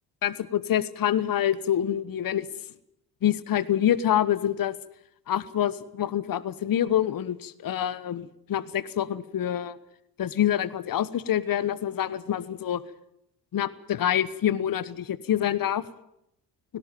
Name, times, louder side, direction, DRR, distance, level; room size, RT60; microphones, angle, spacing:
voice 1, 0.2-2.5 3.2-4.7 5.3-9.8 10.2-12.8 13.5-15.8, left 10 dB, 45° left, 17 dB, 1.2 m, -26 dB
18.5 x 17.5 x 9.2 m, 0.77 s
hypercardioid pair, 50°, 49 cm